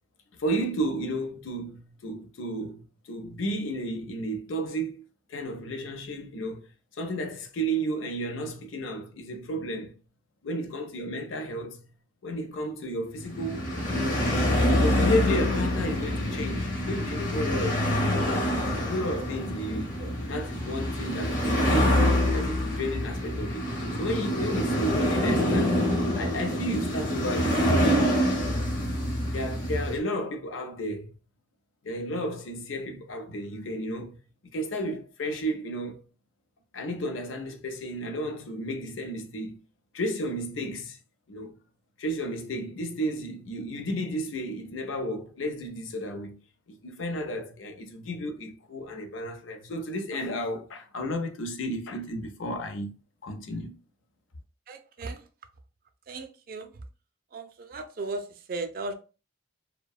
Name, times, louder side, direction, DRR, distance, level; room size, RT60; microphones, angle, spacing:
voice 1, 0.4-5.0 5.3-6.7 7.0-10.0 10.4-11.8 12.2-17.9 18.3-20.0 20.3-22.1 22.3-25.8 26.1-28.6 29.3-31.1 31.8-34.2 34.5-36.0 36.7-39.6 39.9-41.0 41.3-41.5 42.0-46.4 46.7-53.0 53.2-53.8, equal, 85° left, 0.5 m, -33 dB
sound 1, 13.2-30.0, equal, 45° left, 0.8 m, -26 dB
voice 2, 54.7-55.2 56.1-56.7 57.3-58.9, right 3 dB, 50° right, 0.4 m, -36 dB
2.6 x 2.1 x 2.3 m
head